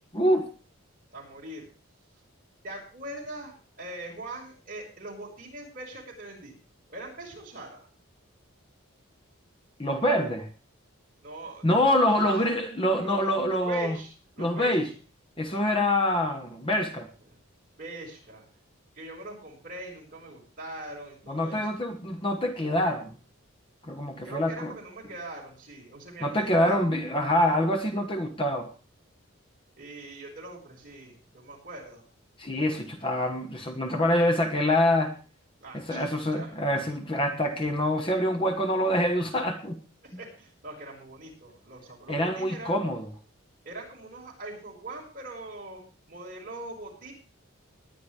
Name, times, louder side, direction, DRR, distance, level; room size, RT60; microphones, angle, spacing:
voice 1, 0.1-0.5 9.8-10.5 11.6-14.0 14.4-14.9 15.4-17.1 21.3-23.1 23.8-24.7 26.2-28.7 32.4-35.2 35.7-39.8 42.1-43.1, left 1 dB, 25° left, 5 dB, 1.2 m, -25 dB
voice 2, 1.1-1.7 2.6-6.5 6.9-7.9 11.2-12.5 13.0-14.9 17.3-17.4 17.7-18.5 18.9-21.8 24.2-27.0 29.8-32.0 35.6-36.5 39.2-39.4 40.0-42.8 43.6-45.8 46.1-47.1, right 2 dB, 40° right, -2 dB, 5.2 m, -42 dB
20.0 x 10.0 x 3.4 m, 0.36 s
head